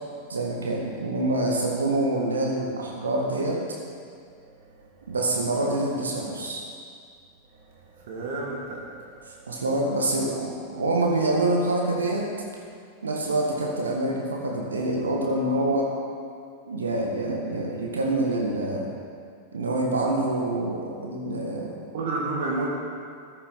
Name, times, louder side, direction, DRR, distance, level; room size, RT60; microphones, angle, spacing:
voice 1, 0.3-3.6 5.1-6.7 9.5-12.3 13.0-15.9 16.7-18.9 19.5-21.7, right 2 dB, 70° right, -1 dB, 1.7 m, -26 dB
voice 2, 8.0-8.8 21.9-22.7, right 3 dB, 55° right, -3 dB, 2.0 m, -29 dB
14.5 x 9.9 x 4.4 m, 2.2 s
figure-of-eight pair, 90°, 0 cm